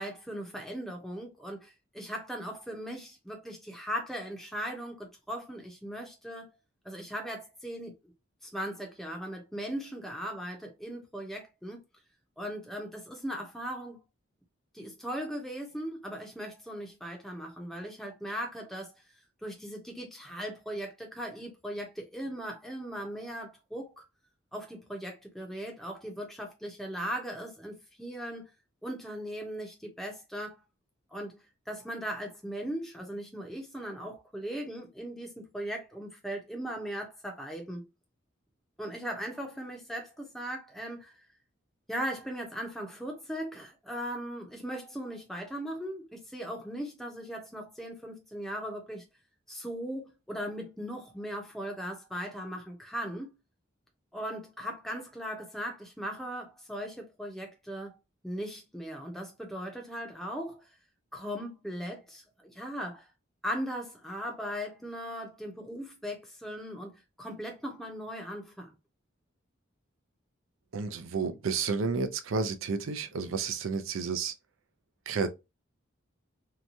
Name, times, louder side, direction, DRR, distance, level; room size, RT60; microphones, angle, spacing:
voice 1, 0.0-6.5 6.8-8.0 8.5-11.8 12.4-14.0 14.7-18.9 19.4-24.0 24.5-28.5 28.8-30.6 31.1-31.4 31.7-37.9 38.8-41.1 41.9-49.0 49.5-53.3 54.1-58.0 58.2-60.7 61.1-63.1 63.4-68.7, equal, ahead, 0.6 m, -38 dB
voice 2, 70.7-74.3 75.1-75.3, right 5 dB, 85° right, 0.5 m, -31 dB
2.8 x 2.2 x 2.6 m
head